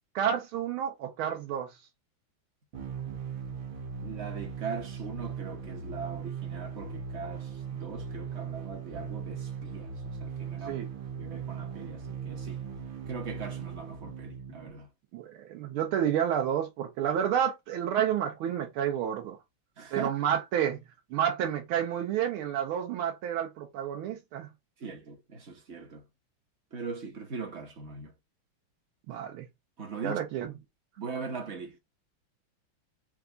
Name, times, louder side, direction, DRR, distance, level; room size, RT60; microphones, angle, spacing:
voice 1, 0.1-1.7 10.7-10.9 15.1-19.4 19.9-20.8 21.1-24.5 29.1-29.4 30.0-30.5, right 9 dB, 85° right, 1.7 m, -30 dB
sound 1, 2.7-14.7, right 6 dB, 70° right, 1.9 m, -39 dB
voice 2, 4.0-10.8 11.2-12.7 13.1-14.9 19.8-20.1 24.8-26.1 26.7-28.1 29.8-30.2 31.0-31.8, right 5 dB, 45° right, 0.9 m, -40 dB
4.6 x 2.3 x 3.8 m
omnidirectional pair, 2.3 m